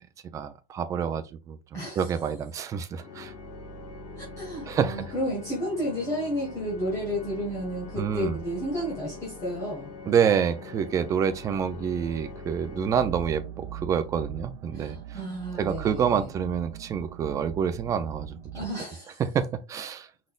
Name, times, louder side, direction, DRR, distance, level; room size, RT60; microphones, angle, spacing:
voice 1, 0.3-1.6 2.0-3.3 4.7-5.0 8.0-8.4 10.1-15.0 15.6-18.4 19.2-20.1, right 7 dB, 15° right, 0.4 m, -27 dB
voice 2, 1.7-2.1 4.2-9.9 14.7-16.3 18.5-19.2, equal, 15° left, 1.6 m, -32 dB
Organ, 2.9-13.7, left 2 dB, 40° left, 2.3 m, -43 dB
sound 1, 12.9-18.7, right 11 dB, 70° right, 0.6 m, -40 dB
5.1 x 4.1 x 2.4 m
supercardioid pair, 165°, 21 cm